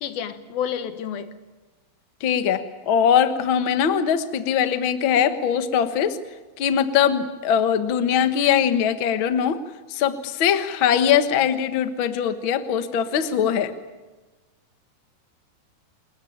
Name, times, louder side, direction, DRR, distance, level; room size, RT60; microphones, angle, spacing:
voice 1, 0.0-1.4, left 8 dB, 85° left, 10 dB, 3.3 m, -30 dB
voice 2, 2.2-6.2 6.6-9.6 9.9-13.7, left 8 dB, 55° left, 9 dB, 1.5 m, -21 dB
28.0 x 21.0 x 8.8 m, 1.2 s
omnidirectional pair, 4.1 m